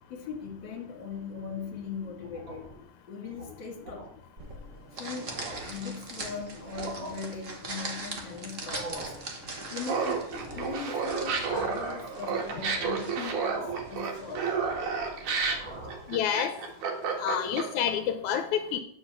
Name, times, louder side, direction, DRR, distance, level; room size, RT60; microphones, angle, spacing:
voice 1, 0.1-2.7 3.1-4.1 4.9-9.2 9.7-14.7, left 5 dB, 40° left, 2.7 m, -40 dB
sound 1, 2.2-2.8 3.2-3.5 3.9-4.1 4.7-4.8 5.1-5.8 6.6-7.1 8.5-9.2 10.3-10.8 11.2-11.9 12.3-12.9 13.5-14.0 14.3-15.0 15.4-16.1, right 2 dB, 55° right, 4.0 m, -43 dB
sound 2, 4.4-15.8, right 2 dB, 40° right, 1.2 m, -42 dB
Laughter, 9.8-17.9, right 5 dB, 90° right, 3.2 m, -31 dB
voice 2, 16.1-16.5 17.2-18.8, left 9 dB, 80° left, 2.1 m, -28 dB
9.8 x 6.0 x 6.8 m
omnidirectional pair, 3.5 m